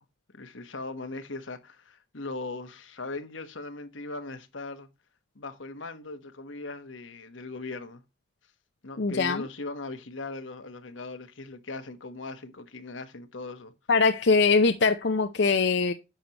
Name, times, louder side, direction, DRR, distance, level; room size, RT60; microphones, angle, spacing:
voice 1, 0.3-4.9 5.3-8.0 8.8-13.7, left 3 dB, 85° left, 1.2 m, -39 dB
voice 2, 9.0-9.5 13.9-15.9, left 4 dB, 65° left, 0.6 m, -22 dB
10.5 x 6.7 x 3.0 m
head